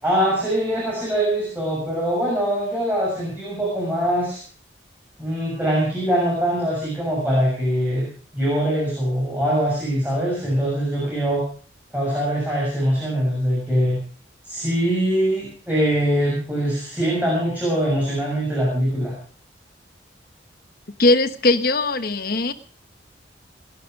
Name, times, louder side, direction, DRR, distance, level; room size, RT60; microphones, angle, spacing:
voice 1, 0.0-4.4 5.2-8.1 8.3-11.4 11.9-14.0 14.4-19.1, equal, 10° right, -5 dB, 6.8 m, -22 dB
voice 2, 21.0-22.5, left 2 dB, 50° left, 10 dB, 1.2 m, -19 dB
20.5 x 11.0 x 5.3 m, 0.44 s
head